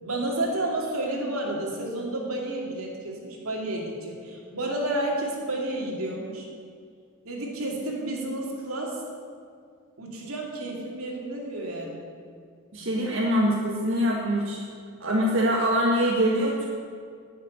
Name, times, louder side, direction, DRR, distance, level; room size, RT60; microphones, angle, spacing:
voice 1, 0.0-6.5 7.2-9.0 10.0-12.0, right 1 dB, 90° right, -1 dB, 2.6 m, -31 dB
voice 2, 12.7-14.6 15.0-16.6, equal, 65° right, -4 dB, 1.7 m, -24 dB
12.0 x 6.6 x 9.4 m, 2.2 s
head